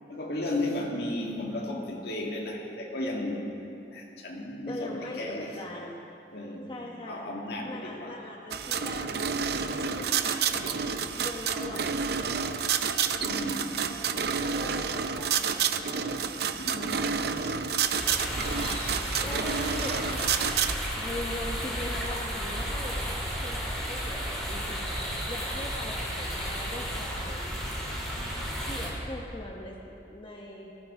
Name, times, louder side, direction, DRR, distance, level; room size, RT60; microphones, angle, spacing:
voice 1, 0.1-3.5 3.9-5.5 6.3-6.8 7.0-8.2 9.6-10.1 10.5-10.7 13.2-13.9 16.1-16.3 16.5-17.2, left 1 dB, 60° left, -1 dB, 2.0 m, -34 dB
voice 2, 4.7-6.0 6.7-7.3 7.6-9.4 9.9-11.9 13.8-14.1 14.4-16.1 18.5-18.8 19.2-20.3 20.9-24.9 25.3-27.8 28.6-29.8 30.1-30.7, left 1 dB, 30° left, -2 dB, 1.0 m, -41 dB
sound 1, 8.5-20.7, right 6 dB, 60° right, 0.6 m, -29 dB
sound 2, 18.0-28.9, equal, ahead, 3.5 m, -33 dB
19.0 x 15.5 x 3.7 m, 2.9 s
head